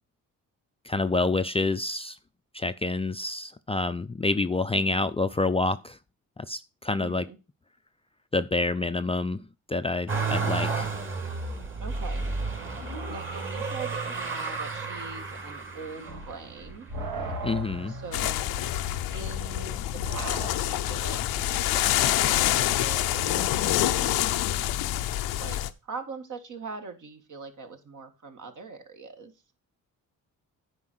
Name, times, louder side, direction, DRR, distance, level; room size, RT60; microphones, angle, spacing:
voice 1, 0.9-2.2 2.5-6.0 6.5-7.2 8.3-9.4 9.7-10.9 17.4-17.9, left 3 dB, 15° left, 0.5 m, -27 dB
voice 2, 7.0-7.4 11.8-12.3 13.0-16.9 17.9-18.4 19.1-24.2 25.4-29.3, right 4 dB, 55° right, 2.0 m, -42 dB
Motor vehicle (road), 10.1-19.2 19.8-20.6 20.9-22.0 23.0-23.1, right 4 dB, 35° right, 2.3 m, -33 dB
sound 1, 16.0-24.2, right 1 dB, 75° right, 2.7 m, -40 dB
sound 2, 18.1-25.7, left 13 dB, 90° left, 0.7 m, -26 dB
9.5 x 5.0 x 6.2 m
cardioid pair, 80°, 35 cm